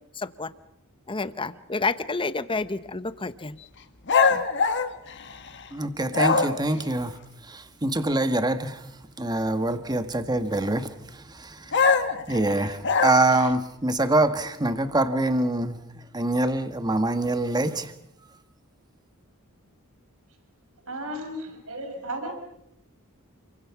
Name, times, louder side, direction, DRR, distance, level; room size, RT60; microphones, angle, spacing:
voice 1, 0.2-0.5 1.1-3.6 4.3-4.4, left 3 dB, 25° left, 13 dB, 1.0 m, -29 dB
sound 1, 4.1-5.7 6.1-6.8 11.7-13.5, left 5 dB, 55° left, 1.6 m, -23 dB
voice 2, 5.7-7.2 7.4-8.8 9.2-15.8 16.1-17.9, right 2 dB, 20° right, 9 dB, 1.4 m, -25 dB
voice 3, 20.9-22.3, right 1 dB, 70° right, 4 dB, 6.0 m, -34 dB
29.0 x 24.0 x 6.0 m, 0.78 s
head